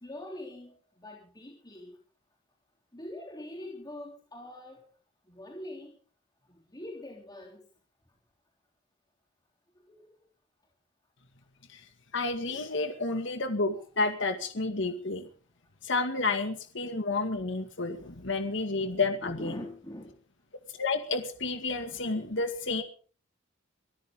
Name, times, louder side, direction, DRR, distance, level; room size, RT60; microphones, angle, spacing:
voice 1, 0.0-2.0 2.9-4.9 5.3-6.0 6.5-7.6 9.9-10.2 12.6-13.0 13.8-13.9 19.2-20.2, left 1 dB, 20° left, -1 dB, 3.4 m, -43 dB
voice 2, 12.1-15.3 15.8-19.6 20.8-22.8, left 3 dB, 65° left, 7 dB, 2.0 m, -30 dB
24.0 x 14.0 x 3.8 m, 0.40 s
head